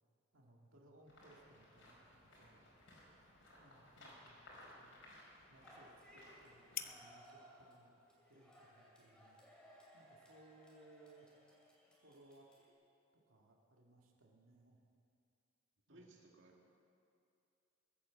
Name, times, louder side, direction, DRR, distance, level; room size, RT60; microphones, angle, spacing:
voice 1, 0.3-2.7 3.2-5.1 5.5-8.0 8.2-9.4 9.9-11.4 12.0-12.5 13.3-14.8 15.9-16.1, right 2 dB, 85° right, -1 dB, 2.0 m, -65 dB
sound 1, 1.1-6.9, left 1 dB, 75° left, 5.0 m, -60 dB
sound 2, 2.4-10.1, left 10 dB, 45° left, 0.6 m, -56 dB
sound 3, 5.6-12.7, equal, 5° left, 2.6 m, -63 dB
voice 2, 15.9-16.8, right 2 dB, 65° right, -1 dB, 2.0 m, -62 dB
21.0 x 8.9 x 7.4 m, 2.5 s
head